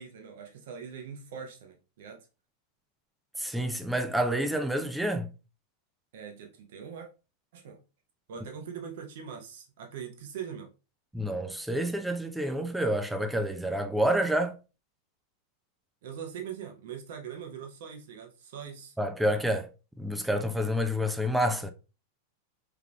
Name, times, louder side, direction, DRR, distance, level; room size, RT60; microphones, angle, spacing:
voice 1, 0.0-2.3 6.1-7.1 7.5-7.8 8.3-10.7 16.0-18.9, right 7 dB, 55° right, 0.8 m, -42 dB
voice 2, 3.4-5.3 11.1-14.5 19.0-19.7 20.0-21.7, equal, 5° right, 0.5 m, -28 dB
4.7 x 3.5 x 2.3 m
figure-of-eight pair, 90°, 0 cm